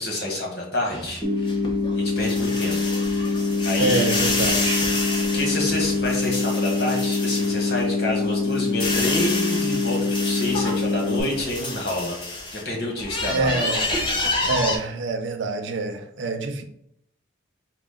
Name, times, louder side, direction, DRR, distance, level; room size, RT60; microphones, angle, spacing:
voice 1, 0.0-1.5 1.9-2.8 3.6-4.1 5.3-12.2 12.5-13.6, left 1 dB, 60° left, -1 dB, 1.4 m, -28 dB
sound 1, 0.9-7.8 8.3-12.6 13.0-14.8, left 2 dB, 25° left, 0.6 m, -29 dB
sound 2, 1.2-11.2, left 3 dB, 15° right, 1.5 m, -24 dB
voice 2, 3.8-4.9 13.2-14.0 14.5-16.6, right 3 dB, 90° right, 6 dB, 0.5 m, -26 dB
4.1 x 2.4 x 3.7 m, 0.73 s
head